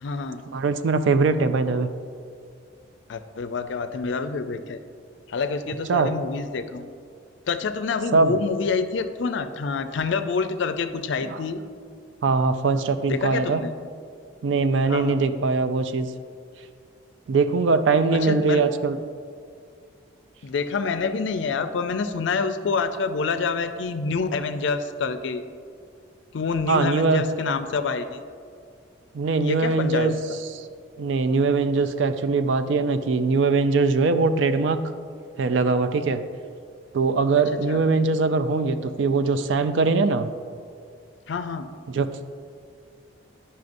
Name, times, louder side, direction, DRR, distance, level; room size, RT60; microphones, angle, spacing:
voice 1, 0.0-0.4 3.1-4.8 5.3-6.9 7.5-11.6 13.1-13.7 14.9-15.3 18.1-18.6 20.4-25.4 26.3-28.2 29.4-30.4 37.5-37.8 41.3-41.7, left 4 dB, 70° left, 10 dB, 0.4 m, -27 dB
voice 2, 0.5-1.9 5.9-6.1 8.1-8.3 11.2-11.4 12.2-13.6 14.4-16.1 17.3-19.0 26.7-27.2 29.1-30.1 30.5-30.7 31.0-34.8 35.4-36.2 36.9-40.3 41.9-42.1, right 4 dB, 70° right, 10 dB, 0.4 m, -21 dB
10.5 x 5.5 x 2.6 m, 2.2 s
head